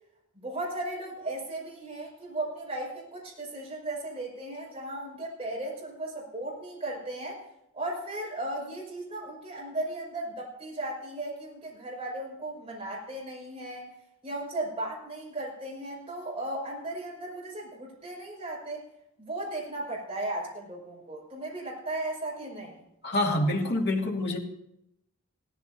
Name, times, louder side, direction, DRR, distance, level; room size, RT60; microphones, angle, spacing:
voice 1, 0.4-7.4 7.7-13.9 14.2-18.8 19.2-22.8, right 1 dB, 25° right, -4 dB, 5.5 m, -36 dB
voice 2, 23.0-24.4, left 1 dB, 50° left, -2 dB, 2.5 m, -26 dB
18.0 x 14.5 x 2.8 m, 0.82 s
head